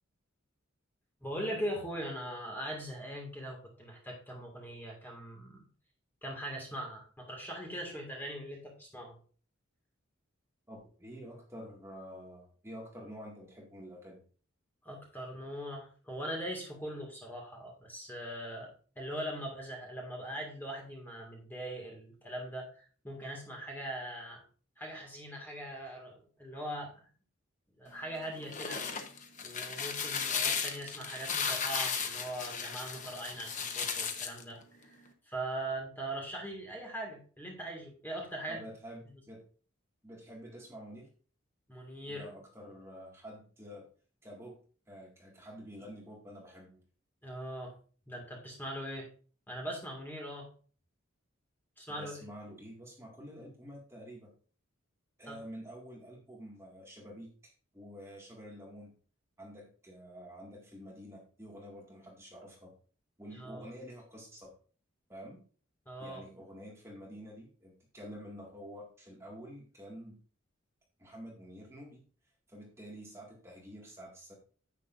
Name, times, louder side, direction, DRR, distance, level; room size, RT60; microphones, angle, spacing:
voice 1, 1.2-5.7 6.2-9.2 14.8-18.7 19.0-24.4 24.8-27.0 27.8-28.8 29.4-38.6 41.7-42.3 47.2-47.7 48.1-49.1 49.5-50.5 51.8-52.3 55.3-55.4 63.3-63.7 65.9-66.2, right 1 dB, 10° left, 0 dB, 2.0 m, -41 dB
voice 2, 10.7-14.2 38.5-39.4 40.0-41.1 42.1-43.9 44.2-44.6 44.9-46.8 51.9-54.3 55.2-57.3 57.7-58.9 59.4-62.7 63.2-64.5 65.1-65.5 66.0-70.2 71.0-72.0 72.5-74.3, equal, 15° right, -2 dB, 2.0 m, -48 dB
sound 1, 28.3-34.4, left 6 dB, 35° left, 1.0 m, -35 dB
10.0 x 8.3 x 2.6 m, 0.40 s
head